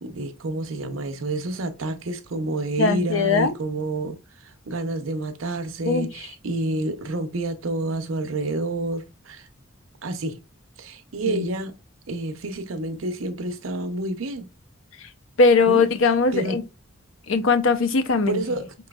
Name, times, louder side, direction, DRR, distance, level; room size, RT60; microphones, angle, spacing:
voice 1, 0.0-9.5 10.0-10.4 10.8-11.7 12.1-14.5 15.7-15.8 16.3-16.6 18.3-18.7, right 2 dB, 85° right, 0.7 m, -29 dB
voice 2, 2.8-3.5 5.8-6.1 11.3-11.5 15.0-15.1 15.4-16.6 17.3-18.4, left 4 dB, 85° left, 0.6 m, -20 dB
4.8 x 3.0 x 2.3 m
head